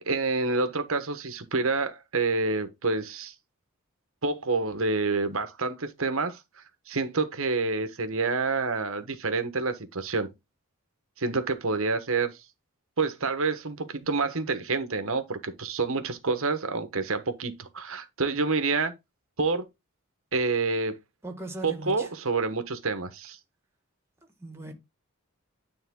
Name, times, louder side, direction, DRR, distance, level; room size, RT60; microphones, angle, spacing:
voice 1, 0.0-3.3 4.2-6.4 6.9-10.3 11.2-12.4 13.0-18.9 19.4-19.7 20.3-20.9 21.6-23.4, right 3 dB, 65° right, 1.2 m, -28 dB
voice 2, 21.2-22.1 24.4-24.7, right 2 dB, 10° right, 1.7 m, -38 dB
9.4 x 3.6 x 3.7 m
head